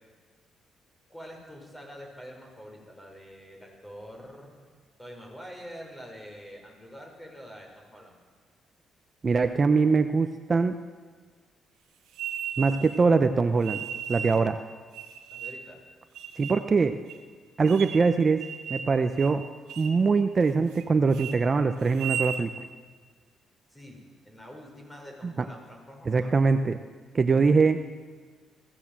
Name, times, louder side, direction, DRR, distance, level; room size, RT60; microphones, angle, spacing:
voice 1, 1.1-4.5 5.0-8.2 15.3-15.8 23.7-26.3, equal, 15° left, 1 dB, 6.0 m, -45 dB
voice 2, 9.2-10.8 12.6-13.8 14.1-14.6 16.4-17.0 17.6-18.4 18.7-19.5 19.8-22.5 25.2-25.3 26.1-26.8 27.1-27.8, right 4 dB, 35° right, 8 dB, 0.9 m, -23 dB
sound 1, 12.1-13.0 13.6-14.5 14.9-15.7 16.1-16.6 17.1-17.2 17.6-18.1 18.4-18.9 19.2-19.4 19.7-20.0 20.4-20.8 21.1-21.4 21.9-22.4, right 8 dB, 85° right, 1.7 m, -35 dB
21.5 x 16.0 x 7.6 m, 1.5 s
cardioid pair, 90°, 0 cm